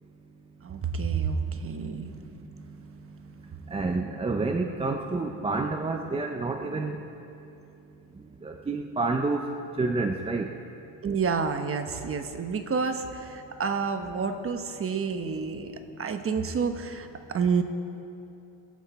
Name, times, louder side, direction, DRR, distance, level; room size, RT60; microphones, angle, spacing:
voice 1, 0.6-2.1 11.0-15.7 16.0-17.6, right 5 dB, 30° right, 7 dB, 1.1 m, -29 dB
voice 2, 1.5-2.8 3.7-7.0 8.4-9.5 9.8-10.5, right 3 dB, 15° right, 3 dB, 0.6 m, -29 dB
23.0 x 8.5 x 4.3 m, 2.8 s
cardioid pair, 110°, 47 cm